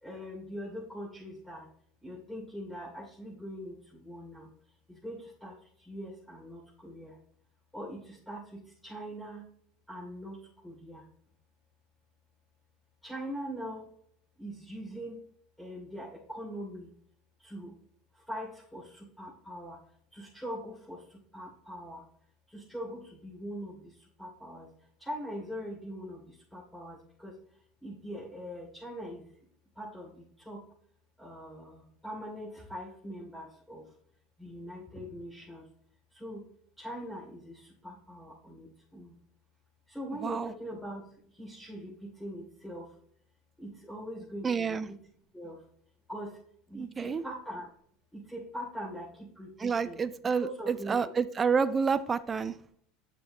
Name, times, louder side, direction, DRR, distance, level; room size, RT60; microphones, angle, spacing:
voice 1, 0.0-1.7 2.0-4.5 4.9-7.2 7.7-9.4 9.9-11.0 13.0-13.9 14.4-15.2 15.6-16.9 17.4-17.8 18.1-19.8 20.1-22.0 22.5-24.7 25.0-27.3 27.8-29.3 29.7-30.6 31.2-33.9 34.4-35.6 36.1-36.4 36.8-39.2 39.9-41.0 41.3-42.9 43.6-45.0 45.3-45.6 46.1-46.4 46.7-47.7 48.1-50.0 50.4-51.1, equal, 5° left, -6 dB, 2.8 m, -42 dB
voice 2, 44.4-44.9 47.0-47.2 49.6-52.5, right 5 dB, 25° right, 13 dB, 0.4 m, -29 dB
8.2 x 6.8 x 3.0 m, 0.63 s
hypercardioid pair, 80°, 0 cm